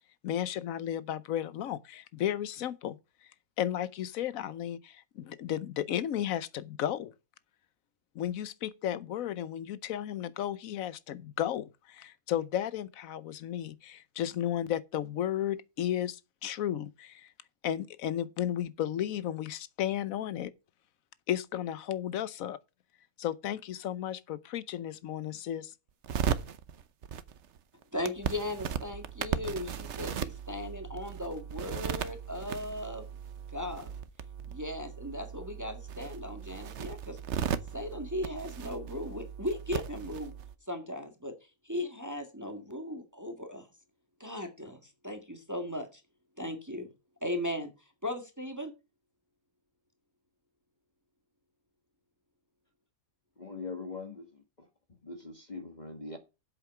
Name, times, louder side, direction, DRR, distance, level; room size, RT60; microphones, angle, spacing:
voice 1, 0.2-3.0 3.6-7.1 8.1-17.3 17.6-20.5 21.3-22.6 23.2-25.7, left 11 dB, 75° left, 1.1 m, -34 dB
sound 1, 26.0-40.5, right 8 dB, 60° right, 1.0 m, -37 dB
voice 2, 27.9-33.1 33.5-33.9 34.5-37.2 37.7-40.3 40.7-41.4 41.6-43.7 44.2-46.0 46.4-46.9 47.2-47.7 48.0-48.7, left 1 dB, 10° right, 1.7 m, -37 dB
voice 3, 53.4-54.7 55.0-56.2, left 3 dB, 30° left, 1.5 m, -42 dB
8.2 x 7.5 x 5.8 m
omnidirectional pair, 1.5 m